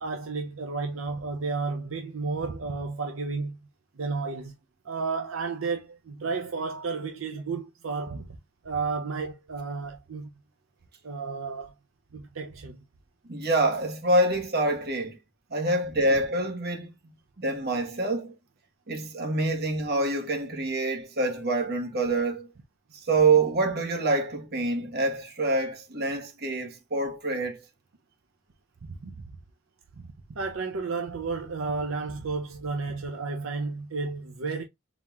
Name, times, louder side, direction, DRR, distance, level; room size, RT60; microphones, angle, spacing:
voice 1, 0.0-3.6 4.0-4.5 4.8-8.4 8.6-10.3 11.0-11.7 12.1-12.8 28.8-29.2 30.0-34.6, right 4 dB, 75° right, 0.6 m, -32 dB
voice 2, 13.3-15.2 15.5-16.9 17.4-18.3 18.9-22.5 23.1-27.6, right 2 dB, 50° right, 1.2 m, -26 dB
4.1 x 4.0 x 2.3 m
head